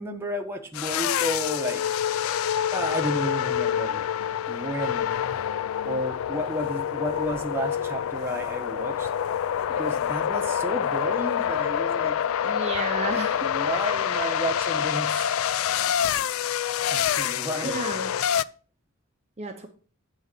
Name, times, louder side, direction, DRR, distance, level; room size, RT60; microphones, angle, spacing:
voice 1, 0.0-1.8 2.7-4.0 4.5-5.1 5.8-9.1 9.7-12.2 13.4-15.4 16.9-17.8, equal, 10° right, 2 dB, 1.0 m, -32 dB
sound 1, 0.7-18.4, left 9 dB, 75° left, 0.3 m, -27 dB
voice 2, 12.4-13.5 17.6-18.1 19.4-19.7, right 3 dB, 30° right, 3 dB, 0.8 m, -32 dB
8.7 x 4.0 x 6.6 m, 0.40 s
head